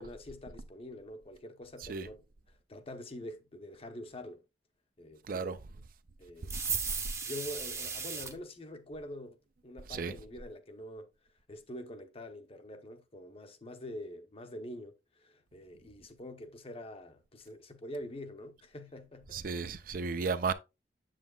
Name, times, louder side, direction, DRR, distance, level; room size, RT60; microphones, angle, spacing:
voice 1, 0.0-2.2 2.7-4.4 5.0-5.6 6.2-6.5 7.2-9.4 9.6-11.1 11.5-19.7 20.0-20.3, left 1 dB, 35° left, 0.8 m, -45 dB
voice 2, 5.3-5.6 6.5-6.6 9.9-10.1 19.3-20.5, right 5 dB, 55° right, 0.5 m, -34 dB
sound 1, 6.5-8.3, right 5 dB, 15° right, 0.7 m, -35 dB
7.5 x 7.1 x 2.3 m
head